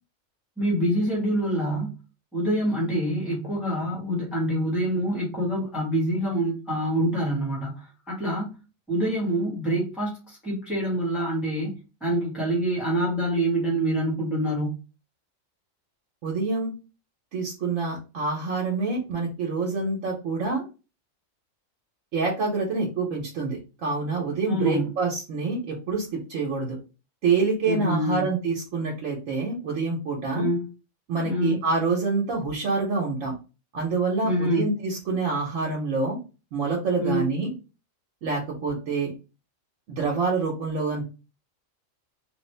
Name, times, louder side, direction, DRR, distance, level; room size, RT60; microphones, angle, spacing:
voice 1, 0.6-1.9 2.3-8.5 8.9-11.7 12.0-14.7 24.5-24.9 27.6-28.3 30.3-30.7 31.2-31.6 34.2-34.7 37.0-37.3, right 1 dB, ahead, -4 dB, 1.2 m, -26 dB
voice 2, 16.2-16.7 17.3-20.6 22.1-26.8 27.2-30.5 31.1-33.3 33.7-36.2 36.5-37.5 38.2-39.1 39.9-41.0, right 4 dB, 80° right, -2 dB, 1.2 m, -26 dB
3.2 x 2.4 x 3.2 m, 0.32 s
omnidirectional pair, 1.4 m